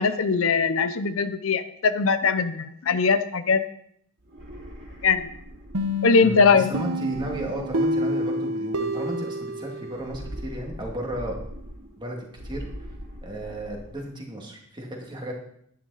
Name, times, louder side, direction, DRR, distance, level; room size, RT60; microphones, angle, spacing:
voice 1, 0.0-3.6 5.0-5.3 6.0-6.7, left 5 dB, 65° left, 11 dB, 0.6 m, -21 dB
sound 1, 4.2-6.1 7.0-8.5 9.9-12.0 12.3-14.0, equal, 55° right, 3.1 m, -41 dB
sound 2, 5.7-10.4, equal, 85° right, 1.2 m, -29 dB
voice 2, 6.2-11.4 12.0-12.6 13.2-15.4, right 1 dB, 20° right, 0 dB, 2.3 m, -34 dB
11.0 x 10.5 x 4.2 m, 0.68 s
head